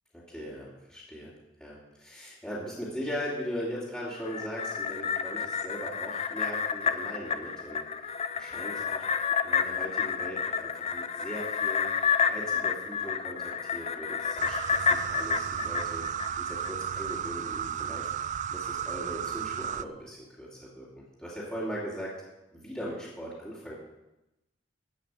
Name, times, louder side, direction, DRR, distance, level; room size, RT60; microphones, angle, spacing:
voice 1, 0.1-1.3 1.6-11.9 12.3-16.0 16.4-18.1 18.5-22.1 22.5-23.7, equal, 5° left, -10 dB, 2.8 m, -39 dB
sound 1, 4.2-16.7 17.1-17.2, left 6 dB, 35° left, 0.6 m, -30 dB
sound 2, 14.4-19.8, right 8 dB, 40° right, 0.4 m, -34 dB
13.5 x 5.8 x 8.2 m, 0.95 s
head